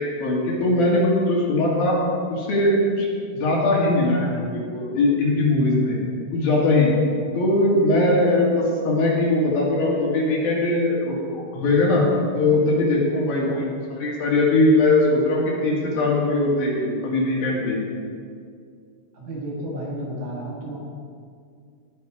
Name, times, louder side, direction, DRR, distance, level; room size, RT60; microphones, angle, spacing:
voice 1, 0.0-1.9 2.3-6.0 6.3-6.9 7.3-12.0 12.3-17.8, left 2 dB, 65° left, -4 dB, 4.0 m, -20 dB
voice 2, 19.1-20.8, right 1 dB, 55° right, -3 dB, 2.7 m, -32 dB
19.0 x 6.9 x 4.9 m, 2.2 s
omnidirectional pair, 4.5 m